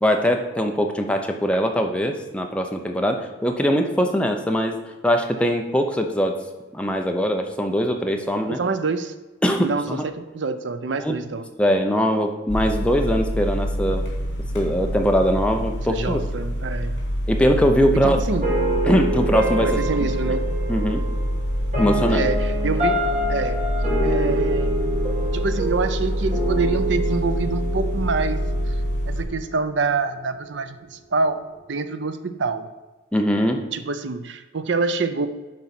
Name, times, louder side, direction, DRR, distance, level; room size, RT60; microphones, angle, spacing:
voice 1, 0.0-4.8 5.0-6.4 6.7-8.6 9.4-10.0 11.0-11.1 11.6-14.0 14.5-16.2 17.3-18.2 18.9-19.7 20.3-20.4 20.7-21.0 21.8-22.3 33.1-33.6, equal, 5° left, 3 dB, 0.7 m, -21 dB
voice 2, 8.5-9.1 9.6-11.5 15.9-17.0 18.0-18.5 19.6-20.5 22.1-23.0 23.3-23.7 24.0-24.8 25.3-28.4 28.7-28.8 29.1-32.7 33.7-35.3, right 4 dB, 70° right, 11 dB, 0.6 m, -26 dB
sound 1, 12.5-29.2, equal, 65° left, 3.2 m, -26 dB
sound 2, 18.4-29.5, right 1 dB, 40° right, 2.8 m, -27 dB
10.5 x 4.1 x 5.9 m, 1.2 s
head